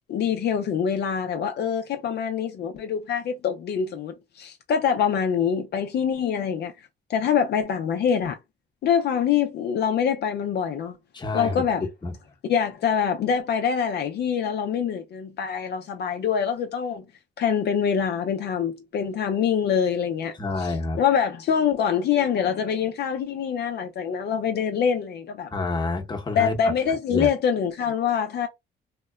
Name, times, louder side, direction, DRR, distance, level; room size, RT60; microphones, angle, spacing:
voice 1, 0.1-8.4 8.8-11.0 11.3-11.8 12.5-17.0 17.4-25.5 26.4-28.5, left 7 dB, 55° left, 0.4 m, -25 dB
voice 2, 11.1-12.1 20.4-21.0 25.5-26.7 27.1-27.3, left 3 dB, 20° left, 0.8 m, -28 dB
2.8 x 2.1 x 2.2 m
cardioid pair, 90°, 20 cm